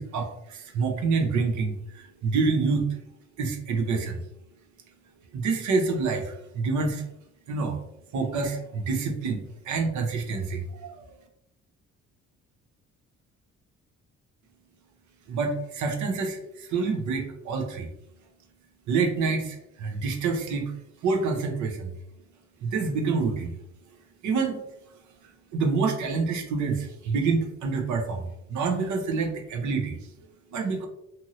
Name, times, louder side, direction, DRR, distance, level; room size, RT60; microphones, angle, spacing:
voice 1, 0.0-2.9 3.4-4.2 5.3-7.0 7.5-7.8 8.1-9.4 9.7-10.9 15.3-16.4 16.7-17.9 18.9-20.7 21.0-21.9 22.6-23.5 24.2-24.6 25.5-28.2 28.5-30.0 30.5-30.9, right 4 dB, 75° right, 3 dB, 0.7 m, -27 dB
2.8 x 2.7 x 2.6 m, 0.82 s
cardioid pair, 90°, 30 cm